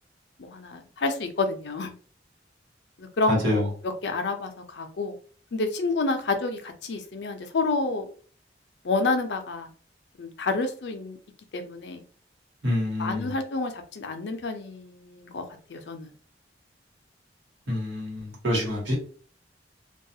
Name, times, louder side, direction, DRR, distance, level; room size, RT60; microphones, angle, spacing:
voice 1, 0.4-1.9 3.0-5.2 5.5-8.1 8.8-9.7 10.2-11.2 11.5-12.0 13.0-15.4 15.7-16.1, left 3 dB, 70° left, 0.5 m, -29 dB
voice 2, 3.3-3.7 12.6-13.3 17.7-18.9, left 1 dB, 85° right, 1.3 m, -26 dB
2.3 x 2.3 x 2.7 m
head